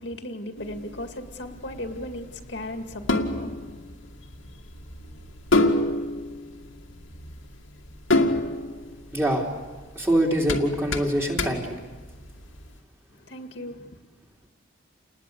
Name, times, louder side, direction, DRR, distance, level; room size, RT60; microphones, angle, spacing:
voice 1, 0.0-3.7 8.2-8.5 13.1-14.0, left 1 dB, 65° left, 2.2 m, -36 dB
sound 1, 0.6-12.7, left 2 dB, 85° left, 2.3 m, -29 dB
voice 2, 9.1-9.5 10.0-11.8, right 1 dB, 10° right, 3.5 m, -24 dB
30.0 x 20.5 x 8.4 m
head